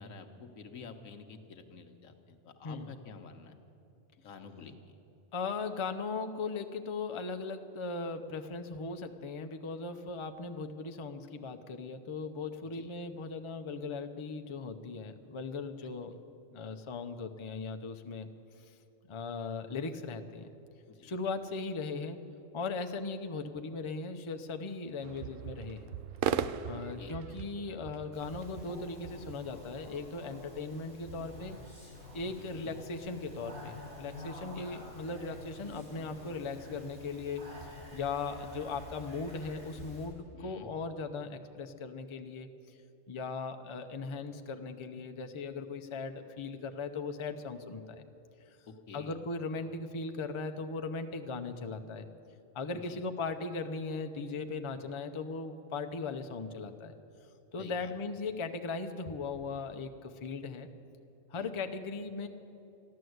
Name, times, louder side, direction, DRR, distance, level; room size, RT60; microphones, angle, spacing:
voice 1, 0.0-3.6 4.2-4.7 12.7-12.9 15.8-15.9 20.9-21.1 26.7-27.2 32.3-32.7 34.5-34.7 40.3-40.7 48.7-49.1 52.7-53.0 57.6-57.9 61.3-61.5, left 5 dB, 90° left, 6 dB, 1.4 m, -50 dB
voice 2, 5.3-16.1 16.5-18.3 18.6-18.7 19.1-20.5 21.0-22.2 22.5-25.9 26.6-31.6 32.1-42.8 43.1-48.0 48.5-48.6 48.9-52.1 52.5-56.9 57.5-60.7 61.3-62.3, left 4 dB, 30° left, 6 dB, 0.6 m, -38 dB
sound 1, 25.0-29.9, right 9 dB, 80° right, 0.9 m, -38 dB
Speech, 28.1-40.0, left 1 dB, 50° right, 4.9 m, -49 dB
14.0 x 11.0 x 7.9 m, 2.9 s
omnidirectional pair, 1.3 m